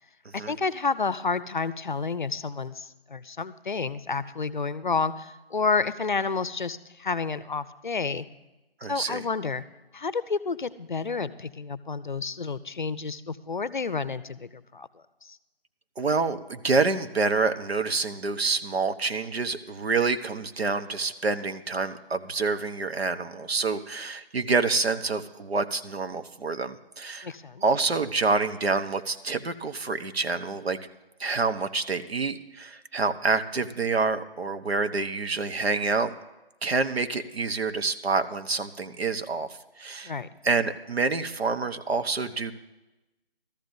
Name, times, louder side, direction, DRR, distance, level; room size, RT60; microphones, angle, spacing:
voice 1, 0.3-8.3 8.9-9.6 9.9-14.9 15.2-15.4 27.2-27.6 40.0-40.3, left 4 dB, 50° left, 15 dB, 0.5 m, -30 dB
voice 2, 8.8-9.2 16.0-27.3 27.6-30.8 31.2-36.1 36.6-39.5 39.8-40.1 40.4-42.5, right 4 dB, 80° right, 9 dB, 1.0 m, -27 dB
16.0 x 13.5 x 2.6 m, 1.0 s
figure-of-eight pair, 170°, 30 cm